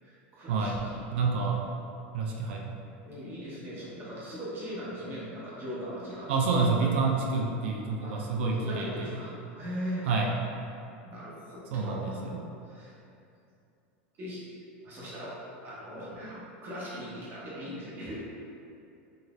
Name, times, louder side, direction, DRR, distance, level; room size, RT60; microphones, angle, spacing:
voice 1, 0.0-1.1 1.4-1.6 3.0-6.5 8.0-8.2 8.6-10.1 10.7-12.2 12.6-12.9 14.1-14.4 14.8-15.4 15.6-18.2, equal, 35° right, -7 dB, 1.1 m, -40 dB
voice 2, 1.1-1.6 2.1-2.7 6.3-9.1 10.1-10.3 11.7-12.4, right 4 dB, 75° right, -1 dB, 0.4 m, -28 dB
3.9 x 2.6 x 2.4 m, 2.6 s
supercardioid pair, 115°, 6 cm